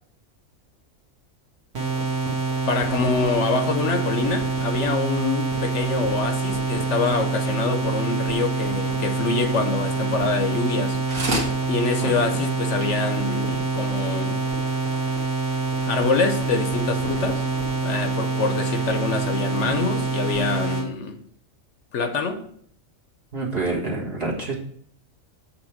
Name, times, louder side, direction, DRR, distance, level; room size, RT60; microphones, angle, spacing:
sound 1, 1.7-20.9, right 4 dB, 65° right, 1.9 m, -26 dB
voice 1, 2.7-11.0 11.7-14.4 15.8-17.4 17.8-21.2 21.9-22.4, left 4 dB, 65° left, 7 dB, 1.0 m, -25 dB
sound 2, 10.7-10.8 11.1-11.5 12.1-12.2 12.5-12.6 12.8-12.9 13.5-13.6, right 1 dB, 85° right, 2.0 m, -27 dB
voice 2, 12.0-12.4 23.3-24.5, right 3 dB, 45° right, -3 dB, 1.8 m, -28 dB
8.0 x 3.3 x 5.8 m, 0.64 s
omnidirectional pair, 1.4 m